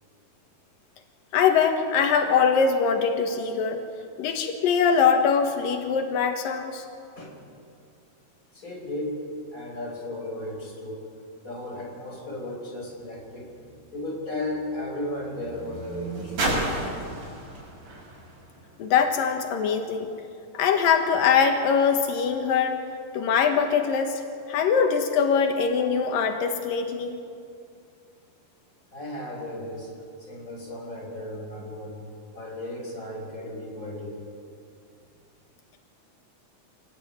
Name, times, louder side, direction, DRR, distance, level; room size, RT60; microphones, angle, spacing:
voice 1, 1.3-3.8 4.2-6.8 18.8-20.1 20.5-22.8 23.1-24.2 24.5-27.2, left 6 dB, 85° left, 5 dB, 3.1 m, -22 dB
voice 2, 8.5-9.2 9.5-11.0 11.4-13.5 13.9-16.7 28.9-29.9 30.2-32.0 32.3-34.2, left 1 dB, 25° left, 0 dB, 5.5 m, -35 dB
sound 1, 13.0-19.4 20.2-20.3, right 1 dB, 80° right, 8.2 m, -34 dB
26.0 x 19.0 x 9.3 m, 2.4 s
omnidirectional pair, 3.9 m